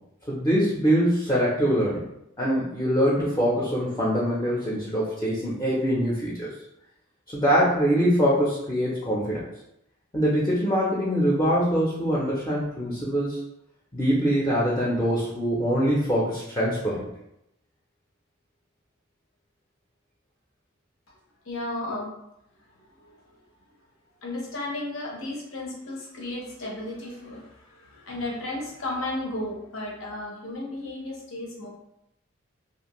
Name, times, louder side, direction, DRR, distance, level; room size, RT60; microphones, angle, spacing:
voice 1, 0.3-2.0 2.4-6.5 7.3-9.5 10.1-13.4 13.9-17.1, equal, 15° left, -5 dB, 0.5 m, -23 dB
voice 2, 21.4-22.1 22.7-23.4 24.2-31.7, left 2 dB, 80° left, -2 dB, 0.8 m, -34 dB
2.6 x 2.5 x 2.9 m, 0.82 s
head